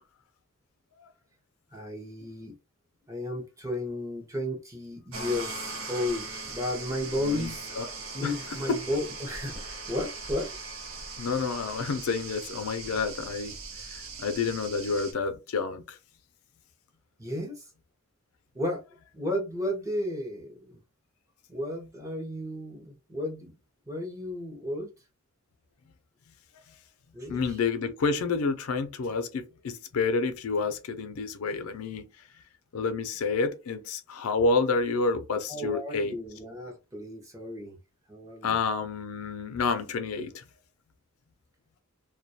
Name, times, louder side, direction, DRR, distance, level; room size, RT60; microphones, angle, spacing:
voice 1, 1.7-2.5 3.1-7.8 8.1-10.5 17.2-17.7 18.5-18.8 19.1-20.8 21.5-23.5 23.9-24.9 27.1-27.6 35.5-37.8 38.1-38.6, left 1 dB, 15° right, 0.6 m, -33 dB
sound 1, 5.1-15.1, right 3 dB, 70° right, 0.7 m, -40 dB
voice 2, 7.2-7.9 8.2-8.3 8.7-8.8 11.2-13.5 13.9-16.0 27.3-32.1 32.7-36.2 38.4-40.4, left 4 dB, 85° left, 0.4 m, -29 dB
2.3 x 2.2 x 2.6 m
head